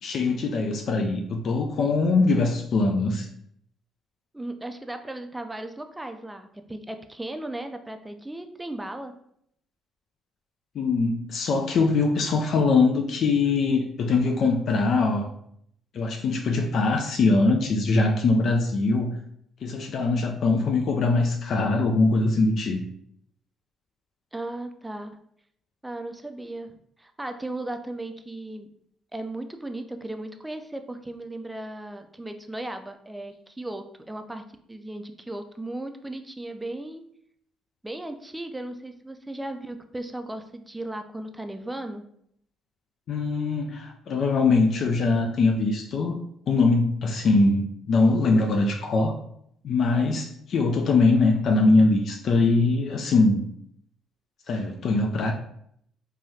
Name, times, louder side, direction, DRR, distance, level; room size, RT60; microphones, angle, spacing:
voice 1, 0.0-3.3 10.8-15.3 15.9-19.2 19.6-22.8 43.1-46.2 46.5-49.1 49.6-53.5 54.5-55.3, left 3 dB, 60° left, 2 dB, 0.3 m, -22 dB
voice 2, 4.3-9.1 20.6-20.8 24.3-25.2 25.8-28.7 29.1-34.4 34.7-37.0 37.8-42.0, right 1 dB, 10° right, 7 dB, 0.4 m, -36 dB
3.2 x 2.3 x 2.7 m, 0.70 s
supercardioid pair, 70°, 0 cm